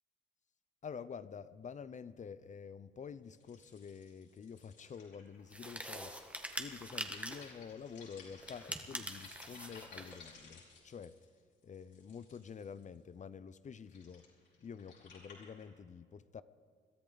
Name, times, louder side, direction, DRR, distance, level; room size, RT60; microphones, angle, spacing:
voice 1, 0.8-6.2 6.6-11.2 11.6-14.3 14.6-16.4, left 6 dB, 40° left, 0.6 m, -48 dB
sound 1, 3.4-13.0 13.6-15.6, left 4 dB, 65° left, 5.1 m, -58 dB
sound 2, 5.5-7.5 8.4-10.2, right 1 dB, 5° right, 1.5 m, -44 dB
22.5 x 13.5 x 4.0 m
cardioid pair, 90°, 20 cm